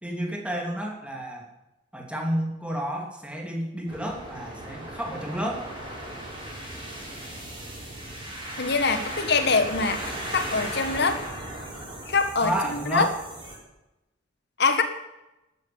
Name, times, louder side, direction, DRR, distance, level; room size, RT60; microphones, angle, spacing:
voice 1, 0.0-1.5 1.9-5.7 12.4-13.1, right 1 dB, 5° right, 0 dB, 2.9 m, -31 dB
sound 1, 3.9-13.6, right 1 dB, 25° right, 6.1 m, -37 dB
voice 2, 8.6-11.2 12.1-12.5 12.9-13.1 14.6-14.8, left 4 dB, 55° left, 8 dB, 1.7 m, -23 dB
13.0 x 12.5 x 7.2 m, 0.95 s
head